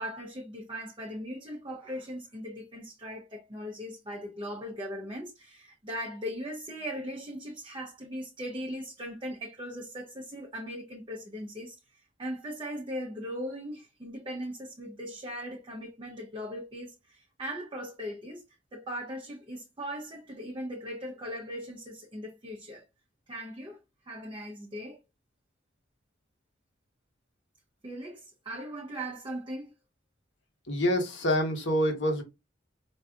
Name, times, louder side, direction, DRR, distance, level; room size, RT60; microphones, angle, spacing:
voice 1, 0.0-18.4 18.7-22.8 23.3-23.8 24.0-25.0 27.8-29.7, equal, 25° right, 0.7 m, -39 dB
voice 2, 30.7-32.2, equal, 65° left, 1.1 m, -26 dB
4.6 x 2.6 x 2.4 m
head